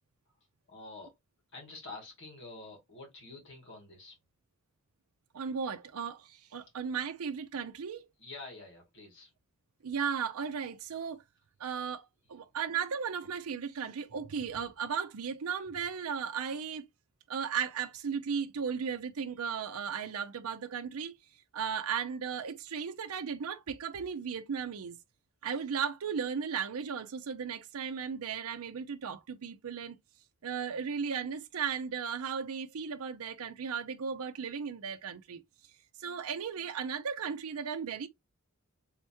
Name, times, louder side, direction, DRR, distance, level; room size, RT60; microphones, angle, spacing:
voice 1, 0.7-1.1 1.5-4.2 8.2-9.3, left 3 dB, 60° left, 2.2 m, -47 dB
voice 2, 5.3-8.1 9.8-11.2 11.6-16.8 17.3-21.1 21.5-25.0 25.4-30.0 30.4-35.4 36.0-38.1, right 6 dB, 85° right, 0.5 m, -36 dB
3.6 x 3.4 x 2.8 m
head